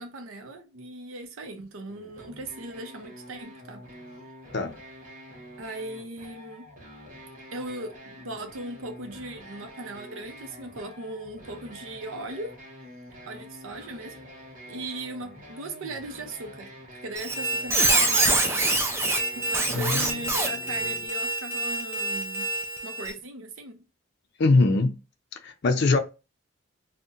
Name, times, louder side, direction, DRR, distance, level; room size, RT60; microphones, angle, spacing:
voice 1, 0.0-3.8 5.6-6.7 7.5-12.5 13.3-14.2 14.7-16.7 17.0-18.7 19.4-22.5 22.8-23.8, right 2 dB, 70° right, 0.6 m, -38 dB
sound 1, 1.9-21.1, equal, 40° right, 1.0 m, -46 dB
Squeak, 17.2-23.1, right 2 dB, 10° right, 0.4 m, -26 dB
voice 2, 19.7-20.2 24.4-25.0 25.4-26.0, left 3 dB, 50° left, 0.4 m, -22 dB
2.7 x 2.1 x 3.6 m
head